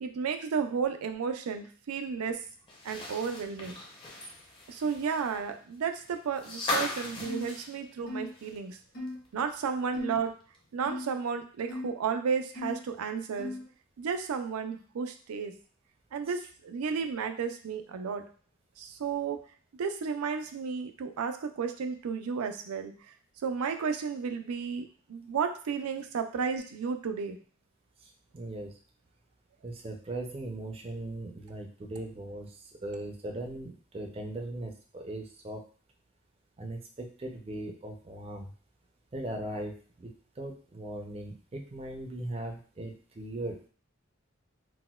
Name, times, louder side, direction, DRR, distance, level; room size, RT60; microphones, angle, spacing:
voice 1, 0.0-2.4 2.8-3.8 4.7-8.8 9.3-10.3 10.7-13.5 14.0-15.5 16.1-18.2 18.8-19.4 19.8-22.9 23.4-27.4, right 6 dB, 90° right, 7 dB, 0.4 m, -33 dB
sound 1, 2.7-8.7 9.1-9.2 10.5-10.6, left 2 dB, 25° left, 0.6 m, -38 dB
sound 2, 7.2-7.5 8.1-8.3 8.9-9.2 9.9-10.2 10.8-11.1 11.7-11.9 12.5-12.8 13.4-13.7, left 1 dB, 50° left, 0.9 m, -38 dB
voice 2, 28.0-28.7 29.6-35.6 36.6-38.5 39.1-43.7, right 1 dB, 25° right, 3 dB, 0.4 m, -39 dB
4.0 x 2.1 x 2.2 m, 0.42 s
head